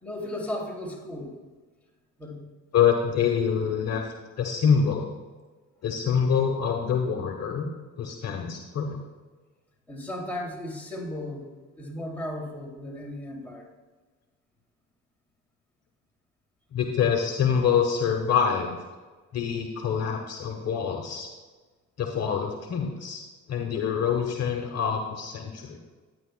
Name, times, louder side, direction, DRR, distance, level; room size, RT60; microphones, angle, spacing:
voice 1, 0.0-1.4 2.2-2.4 9.9-11.5 11.7-13.7, left 1 dB, 5° left, -3 dB, 2.7 m, -35 dB
voice 2, 2.7-4.0 4.4-5.1 5.8-7.7 8.0-9.0 16.7-18.7 19.3-21.3 22.0-25.8, left 7 dB, 55° left, 3 dB, 1.1 m, -25 dB
12.5 x 9.4 x 2.2 m, 1.3 s
cardioid pair, 85°, 31 cm